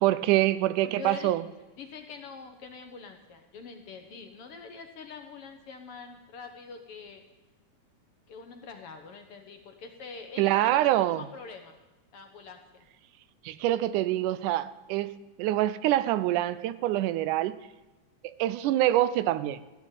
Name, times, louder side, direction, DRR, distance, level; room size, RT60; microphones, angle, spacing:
voice 1, 0.0-1.4 10.4-11.3 13.5-17.6 18.2-19.6, right 14 dB, 90° right, 15 dB, 2.2 m, -25 dB
voice 2, 0.8-1.4 1.8-7.2 8.3-11.8 12.1-12.8, left 5 dB, 60° left, 6 dB, 1.7 m, -44 dB
14.0 x 9.4 x 8.4 m, 1.1 s
omnidirectional pair, 3.5 m